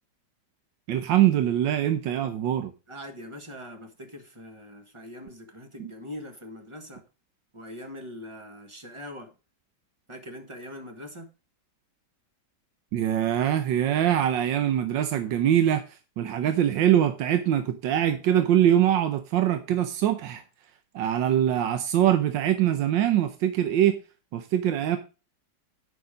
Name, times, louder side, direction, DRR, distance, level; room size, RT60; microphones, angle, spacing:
voice 1, 0.9-2.7 5.8-5.9 12.9-20.4 20.9-24.0 24.3-25.0, right 11 dB, 85° right, 1.5 m, -23 dB
voice 2, 2.9-7.1 7.5-9.3 10.1-11.3, left 1 dB, 20° right, 1.3 m, -42 dB
9.9 x 6.3 x 5.0 m
omnidirectional pair, 1.9 m